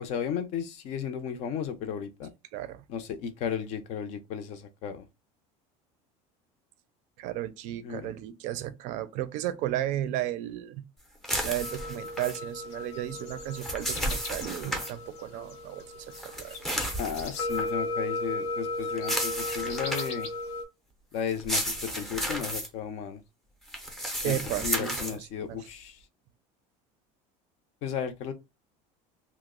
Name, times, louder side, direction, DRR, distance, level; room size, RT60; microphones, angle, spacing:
voice 1, 0.0-2.3 2.9-5.0 7.8-8.1 17.0-20.3 21.1-23.2 24.2-26.0 27.8-28.3, left 8 dB, 50° left, 0.5 m, -34 dB
voice 2, 2.5-2.8 7.2-10.8 11.4-16.6 24.2-25.6, right 13 dB, 55° right, 0.4 m, -34 dB
sound 1, 11.2-12.4 13.3-14.9 16.1-17.7 19.0-20.2 21.3-22.7 23.7-25.2, equal, ahead, 0.5 m, -33 dB
sound 2, 11.6-20.6, left 2 dB, 75° left, 0.9 m, -36 dB
2.9 x 2.0 x 3.6 m
cardioid pair, 165°, 15 cm